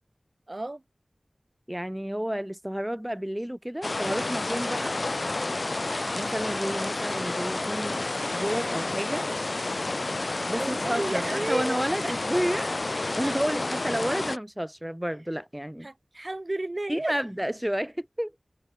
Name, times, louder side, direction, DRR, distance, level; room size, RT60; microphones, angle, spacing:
voice 1, 0.5-0.8 10.6-12.1 13.2-13.3 15.8-17.1, right 2 dB, 45° right, 5.2 m, -32 dB
voice 2, 1.7-4.9 6.1-9.3 10.5-12.8 13.1-15.9 16.9-18.3, equal, 10° right, 4.0 m, -31 dB
sound 1, 3.8-14.4, left 2 dB, 65° left, 4.6 m, -30 dB
wide cardioid pair, 45°, 0 cm